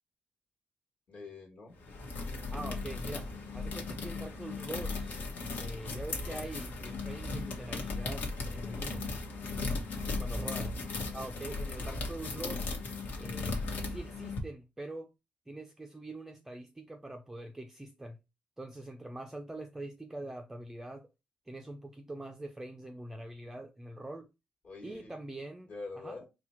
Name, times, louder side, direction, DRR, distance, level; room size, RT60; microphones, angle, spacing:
voice 1, 1.1-1.8 10.3-10.6 24.6-25.1 25.7-26.3, left 3 dB, 45° left, 1.4 m, -45 dB
sound 1, 1.8-14.4, left 3 dB, 75° left, 1.1 m, -37 dB
voice 2, 2.5-3.3 3.5-5.1 5.6-8.2 8.5-9.0 10.2-10.8 11.1-12.7 13.2-15.1 15.5-18.2 18.6-21.1 21.5-24.3 24.8-25.7 26.0-26.2, right 1 dB, 10° right, 0.4 m, -43 dB
4.2 x 2.2 x 4.3 m
cardioid pair, 150°, 3 cm